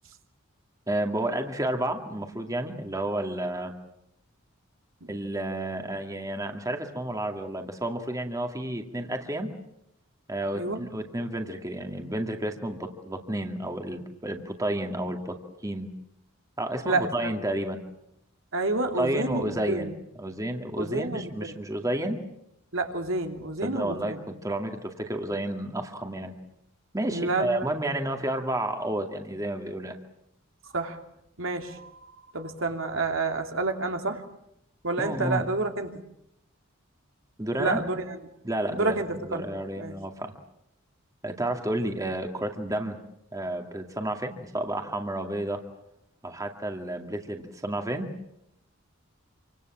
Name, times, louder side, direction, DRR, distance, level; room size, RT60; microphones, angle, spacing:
voice 1, 0.9-3.7 5.1-9.5 10.3-15.4 15.6-15.9 16.6-17.8 19.0-19.9 20.2-22.2 23.6-26.3 26.9-30.0 35.0-35.4 37.4-37.8 38.4-40.3 41.2-43.0 43.3-45.6 46.2-48.1, right 1 dB, 15° right, 4 dB, 2.3 m, -31 dB
voice 2, 16.8-17.3 18.5-19.9 20.8-21.5 22.7-24.2 27.1-27.7 30.7-31.0 31.4-31.9 32.3-34.2 34.8-36.0 37.6-38.2 38.7-39.4 39.8-39.9, right 2 dB, 70° right, 4 dB, 3.1 m, -29 dB
27.5 x 25.5 x 7.5 m, 0.79 s
head